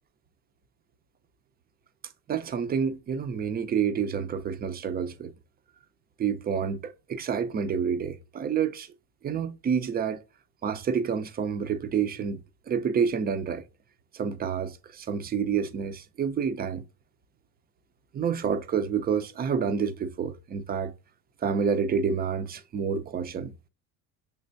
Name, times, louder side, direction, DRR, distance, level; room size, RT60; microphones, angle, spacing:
voice 1, 2.3-5.3 6.2-8.9 9.2-10.2 10.6-12.4 12.7-13.6 14.1-16.8 18.1-20.9 21.4-23.7, right 6 dB, 25° right, 0.4 m, -28 dB
5.9 x 3.3 x 2.6 m
supercardioid pair, 105°, 44 cm